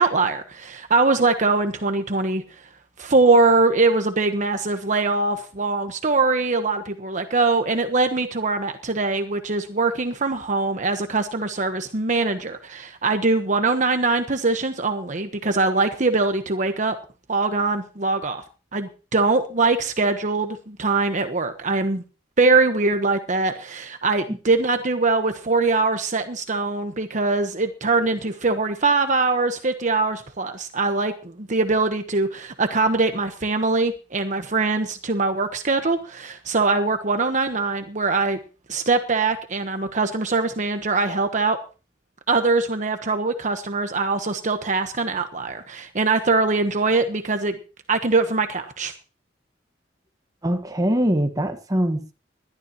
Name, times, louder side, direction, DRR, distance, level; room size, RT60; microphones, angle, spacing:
voice 1, 0.0-2.4 3.0-17.0 17.3-18.4 18.7-22.0 22.4-38.4 38.7-41.6 42.3-47.6 47.9-48.9, right 3 dB, 45° right, 1.2 m, -22 dB
voice 2, 50.4-52.1, equal, 20° right, 1.5 m, -23 dB
21.0 x 12.5 x 3.0 m
head